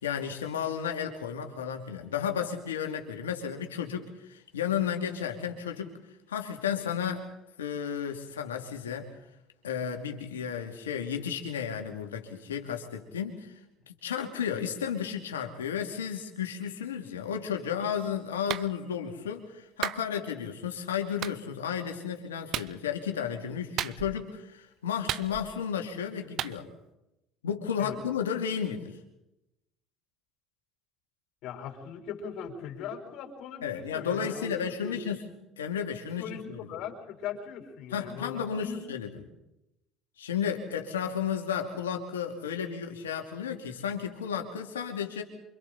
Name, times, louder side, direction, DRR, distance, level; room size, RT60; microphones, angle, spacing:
voice 1, 0.0-5.9 6.3-7.2 7.6-9.1 9.6-13.5 13.9-26.7 27.4-29.0 33.6-35.2 35.6-36.6 37.9-39.2 40.2-45.2, left 8 dB, 85° left, 4 dB, 2.7 m, -33 dB
Clapping, 18.5-18.7 19.8-20.0 21.2-21.4 22.5-22.7 23.8-24.2 25.1-25.6 26.4-26.6, right 12 dB, 60° right, 0.7 m, -33 dB
voice 2, 31.4-35.0 36.2-38.8, left 8 dB, 65° left, 2 dB, 4.9 m, -40 dB
28.5 x 25.5 x 4.3 m, 0.87 s
hypercardioid pair, 65°, 0 cm